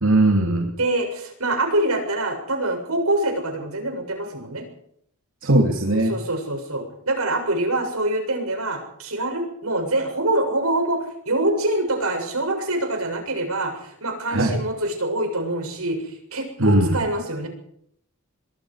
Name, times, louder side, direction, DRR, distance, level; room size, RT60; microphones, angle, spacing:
voice 1, 0.0-0.7 5.4-6.1 14.3-14.6 16.6-17.0, right 1 dB, 65° right, 2 dB, 3.0 m, -19 dB
voice 2, 0.8-4.7 6.1-17.5, right 1 dB, 80° right, 4 dB, 7.5 m, -25 dB
25.0 x 22.0 x 5.0 m, 0.69 s
head